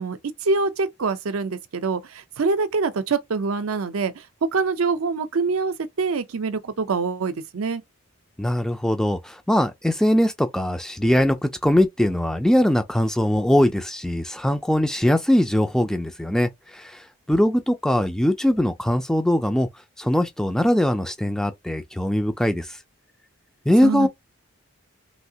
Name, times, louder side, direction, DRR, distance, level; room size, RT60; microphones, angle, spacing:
voice 1, 0.0-4.3 4.5-7.8 23.8-24.1, right 4 dB, 70° right, 0.5 m, -25 dB
voice 2, 8.4-19.7 20.0-22.8 23.7-24.1, left 1 dB, 5° left, 0.3 m, -21 dB
3.1 x 2.7 x 2.7 m
head